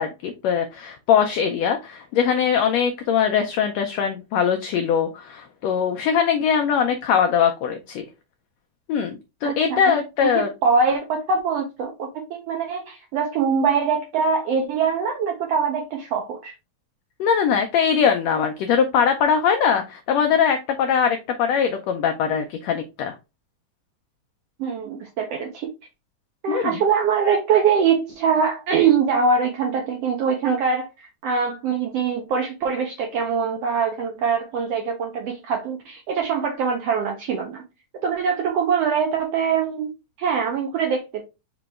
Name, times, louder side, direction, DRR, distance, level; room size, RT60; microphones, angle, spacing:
voice 1, 0.0-8.0 8.9-10.5 17.2-23.2 26.5-26.8, left 7 dB, 85° left, 1.5 m, -21 dB
voice 2, 9.4-16.5 24.6-25.7 26.4-37.6 38.0-39.9 40.2-41.2, right 6 dB, 80° right, 1.4 m, -23 dB
5.0 x 2.9 x 3.5 m
omnidirectional pair, 3.6 m